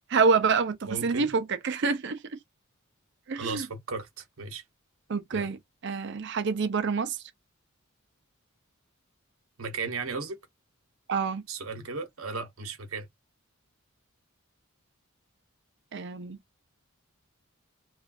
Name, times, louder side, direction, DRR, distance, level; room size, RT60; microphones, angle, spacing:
voice 1, 0.1-2.2 3.3-3.7 5.1-5.6 5.8-7.2 11.1-11.4 15.9-16.4, right 5 dB, 55° right, 0.5 m, -27 dB
voice 2, 0.9-1.3 3.3-4.6 5.3-5.5 9.6-10.4 11.5-13.1, right 4 dB, 80° right, 0.9 m, -35 dB
3.1 x 2.5 x 2.5 m
head